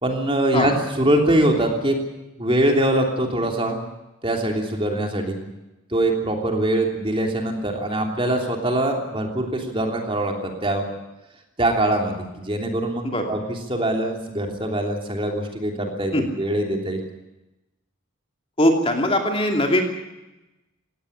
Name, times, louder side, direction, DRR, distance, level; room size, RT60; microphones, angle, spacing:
voice 1, 0.0-2.0 2.4-3.8 4.2-5.4 5.9-10.9 11.6-17.0, right 1 dB, 25° right, 2 dB, 3.2 m, -23 dB
voice 2, 18.6-19.8, left 1 dB, 30° left, 3 dB, 2.8 m, -20 dB
18.0 x 17.0 x 10.0 m, 0.99 s
head